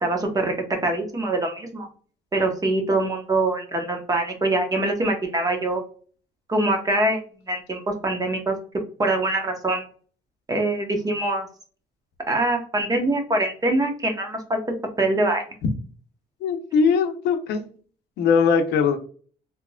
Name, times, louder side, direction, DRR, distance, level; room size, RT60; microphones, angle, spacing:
voice 1, 0.0-1.9 2.3-5.8 6.5-7.2 7.5-8.6 9.0-9.8 10.5-11.5 12.3-14.6 15.0-15.4, right 2 dB, 20° right, 3 dB, 0.9 m, -24 dB
voice 2, 16.4-17.6 18.2-19.0, left 5 dB, 80° left, 6 dB, 0.7 m, -20 dB
3.6 x 2.8 x 2.2 m, 0.41 s
cardioid pair, 110°, 17 cm